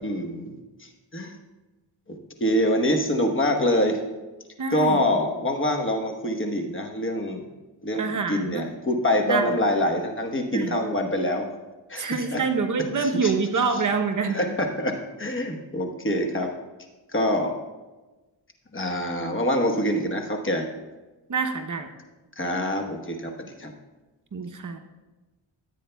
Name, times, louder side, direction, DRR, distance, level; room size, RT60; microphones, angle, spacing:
voice 1, 0.0-1.4 2.1-4.0 4.7-7.4 7.8-11.5 11.9-12.4 12.9-13.3 13.7-13.8 14.2-16.5 17.1-17.5 18.7-20.7 22.4-23.7, left 1 dB, 25° left, 3 dB, 1.1 m, -25 dB
voice 2, 4.6-5.0 8.0-8.7 9.3-9.4 10.5-10.7 12.0-14.4 21.3-21.9 24.3-24.8, right 5 dB, 40° right, 5 dB, 0.8 m, -26 dB
14.5 x 8.3 x 2.3 m, 1.2 s
cardioid pair, 80°, 46 cm